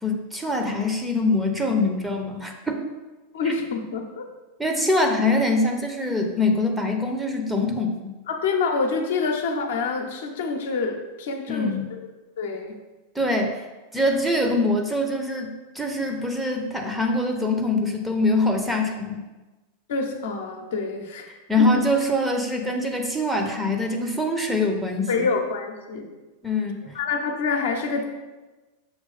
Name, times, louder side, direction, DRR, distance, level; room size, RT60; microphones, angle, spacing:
voice 1, 0.0-2.9 4.6-8.1 11.5-11.9 13.1-13.6 13.9-19.2 21.5-25.3 26.4-27.0, left 2 dB, 5° right, 2 dB, 0.7 m, -24 dB
voice 2, 3.3-4.3 8.3-12.0 12.4-12.8 19.9-21.3 21.6-21.7 25.1-26.1 26.9-28.0, left 4 dB, 60° left, 2 dB, 0.7 m, -27 dB
6.4 x 3.1 x 5.3 m, 1.2 s
figure-of-eight pair, 90°, 0 cm